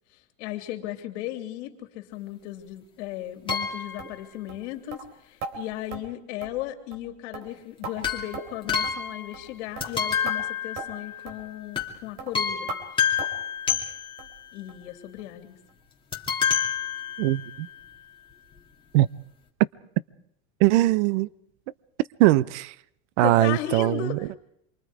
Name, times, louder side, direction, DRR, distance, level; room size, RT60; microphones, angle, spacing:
voice 1, 0.4-12.7 14.5-15.6 23.2-24.4, left 13 dB, 65° left, 3.2 m, -36 dB
sound 1, 3.5-4.2 8.0-9.5 9.8-11.3 11.8-12.0 12.3-14.3 16.1-17.6 18.3-18.4 18.6-18.7, left 8 dB, 15° left, 2.7 m, -28 dB
sound 2, 3.5-3.6 4.0-4.2 4.5-4.6 4.9-5.0 5.4-5.5 5.9-6.0 6.4-6.6 6.9-7.1 7.3-7.9 8.3-8.6 8.8-9.0 9.3-9.5 9.8-9.9 10.3-10.4 10.8-10.9 11.3-11.4 11.8-11.9 12.2-12.3 12.7-12.8 13.2-13.4 13.7-13.9 14.2-14.3 14.7-14.8 15.2-15.3 15.7-15.8, right 4 dB, 45° right, 3.7 m, -38 dB
voice 2, 17.2-17.7 18.9-19.1 20.6-21.3 22.2-22.7 23.2-24.3, right 16 dB, 65° right, 0.8 m, -21 dB
27.5 x 24.0 x 4.9 m
supercardioid pair, 155°, 37 cm